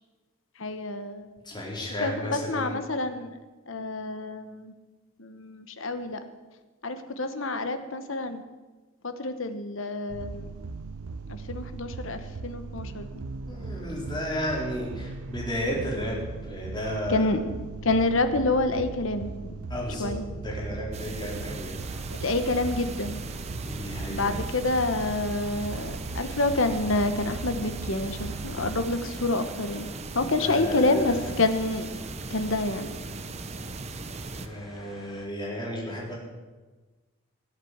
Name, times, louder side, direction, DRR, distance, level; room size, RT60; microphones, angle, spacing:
voice 1, 0.6-1.3 2.0-3.3 3.7-4.7 5.2-6.2 6.8-8.4 9.0-10.5 11.3-13.2 17.1-17.4 17.8-19.6 20.0-20.2 22.1-23.2 24.1-29.9 30.1-31.9 32.3-32.9, left 2 dB, 65° left, 9 dB, 1.2 m, -28 dB
voice 2, 1.4-2.7 13.5-17.3 19.7-21.8 23.6-24.3 30.4-31.3 34.3-36.1, equal, 20° left, -3 dB, 4.0 m, -33 dB
sound 1, 10.1-28.9, right 3 dB, 85° right, 0.6 m, -38 dB
sound 2, 20.9-34.5, right 3 dB, 30° right, 0.7 m, -38 dB
sound 3, 21.8-35.3, equal, ahead, 2.0 m, -50 dB
17.5 x 8.2 x 8.1 m, 1.3 s
head